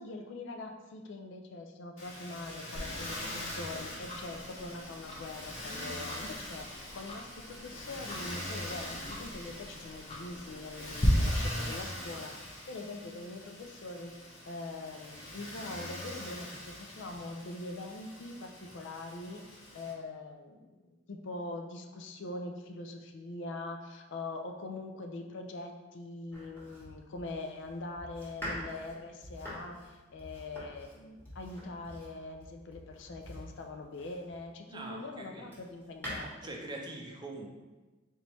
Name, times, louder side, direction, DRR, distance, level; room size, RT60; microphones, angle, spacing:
voice 1, 0.0-12.3 12.7-14.1 14.5-36.6, left 2 dB, 65° left, 4 dB, 0.4 m, -43 dB
Motor vehicle (road), 2.0-19.9, left 1 dB, 80° left, 1.3 m, -43 dB
Tick-tock, 2.7-11.1, left 1 dB, 30° left, 0.7 m, -44 dB
Domestic sounds home sounds, 26.3-34.5 35.0-36.2, equal, 10° left, 1.2 m, -46 dB
voice 2, 34.7-35.5 36.2-37.5, right 2 dB, 20° right, 0 dB, 0.5 m, -43 dB
4.0 x 3.3 x 3.0 m, 1.2 s
head